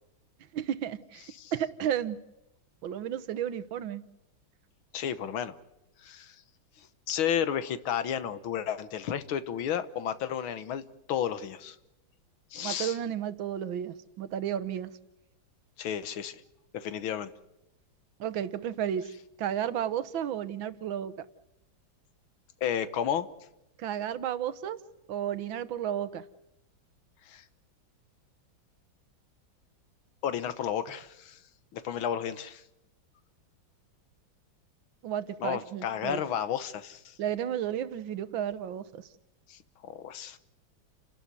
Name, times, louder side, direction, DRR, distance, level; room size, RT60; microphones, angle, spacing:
voice 1, 0.5-1.3 1.5-2.2 2.8-4.0 12.6-14.9 18.2-19.1 19.4-21.3 23.8-24.8 25.1-26.3 35.0-36.2 37.2-39.1, right 10 dB, 75° right, 13 dB, 1.7 m, -32 dB
voice 2, 4.9-5.6 6.0-6.4 6.8-10.8 11.1-11.8 12.5-13.0 15.8-16.4 16.7-17.3 22.6-23.3 27.2-27.5 30.2-31.4 31.7-32.6 35.4-37.2 39.5-40.4, left 9 dB, 85° left, 13 dB, 1.9 m, -32 dB
29.5 x 12.0 x 9.7 m, 0.91 s
omnidirectional pair, 2.2 m